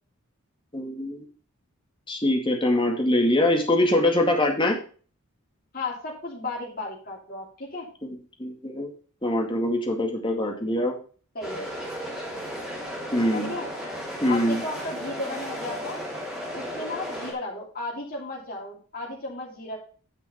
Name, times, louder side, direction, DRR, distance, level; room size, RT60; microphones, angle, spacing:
voice 1, 0.7-1.3 2.1-4.8 8.0-8.9 9.2-10.9 13.1-13.5 14.2-14.6, left 1 dB, 20° left, 2 dB, 2.0 m, -23 dB
voice 2, 5.7-7.9 11.3-11.7 13.3-13.7 14.3-16.0 16.5-19.8, left 2 dB, 45° left, -3 dB, 2.9 m, -34 dB
sound 1, 11.4-17.3, equal, 5° right, 2.6 m, -34 dB
9.4 x 5.5 x 5.5 m, 0.40 s
head